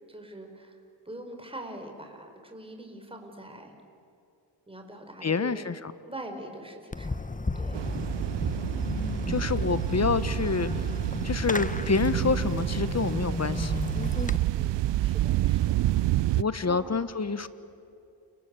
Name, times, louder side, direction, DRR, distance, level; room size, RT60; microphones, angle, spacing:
voice 1, 0.1-0.8 1.0-3.7 4.7-5.7 6.1-7.2 7.5-7.9 14.4-15.8 16.6-16.8 17.2-17.4, right 1 dB, 10° right, 4 dB, 4.8 m, -43 dB
voice 2, 5.2-5.9 8.8-10.9 11.2-13.8 16.4-17.5, left 4 dB, 35° left, 14 dB, 1.2 m, -28 dB
Fireworks, 6.9-14.4, left 3 dB, 20° left, 1.1 m, -33 dB
sound 1, 7.7-16.4, right 15 dB, 75° right, 0.6 m, -28 dB
30.0 x 20.5 x 8.3 m, 2.7 s
cardioid pair, 60°, 43 cm